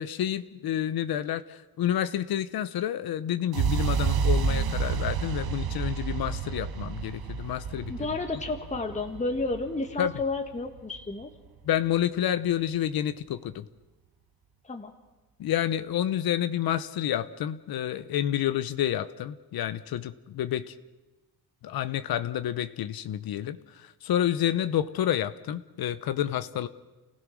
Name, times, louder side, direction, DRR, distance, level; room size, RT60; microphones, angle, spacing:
voice 1, 0.0-7.9 10.0-10.1 11.6-13.6 15.4-20.7 21.6-26.7, left 11 dB, 85° left, 12 dB, 0.9 m, -29 dB
sound 1, 3.5-11.5, right 6 dB, 85° right, 1.5 m, -30 dB
voice 2, 7.9-11.3 14.6-14.9, left 3 dB, 20° left, 4 dB, 1.5 m, -31 dB
29.5 x 16.5 x 6.3 m, 1.1 s
cardioid pair, 125°, 35 cm